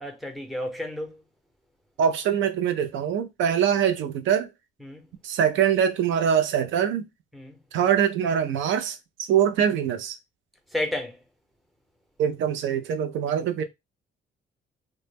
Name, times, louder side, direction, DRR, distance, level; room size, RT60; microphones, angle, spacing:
voice 1, 0.0-1.2 4.8-5.0 7.3-7.6 10.7-11.2, left 1 dB, ahead, 0.7 m, -31 dB
voice 2, 2.0-4.5 5.2-7.0 7.7-10.2 12.2-13.6, right 8 dB, 75° right, 0.4 m, -23 dB
2.0 x 2.0 x 3.3 m
cardioid pair, 90°, 20 cm